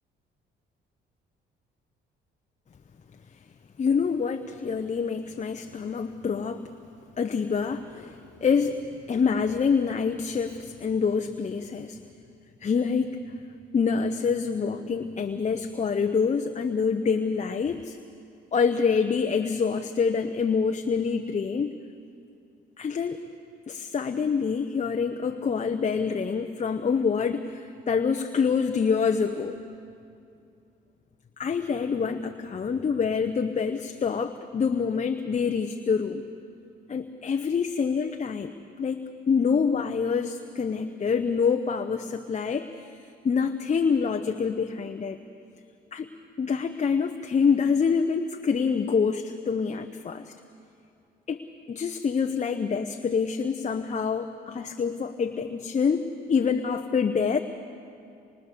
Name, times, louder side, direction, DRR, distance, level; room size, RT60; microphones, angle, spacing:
voice 1, 3.8-6.7 7.2-8.8 9.1-12.0 12.6-13.2 13.7-18.0 18.5-21.7 22.8-23.2 23.7-29.6 31.4-36.2 36.9-38.5 38.8-42.9 43.2-45.2 45.9-46.1 46.4-50.3 51.3-57.4, left 5 dB, 35° left, 6 dB, 0.9 m, -26 dB
25.5 x 22.5 x 6.9 m, 2.5 s
cardioid pair, 90°, 20 cm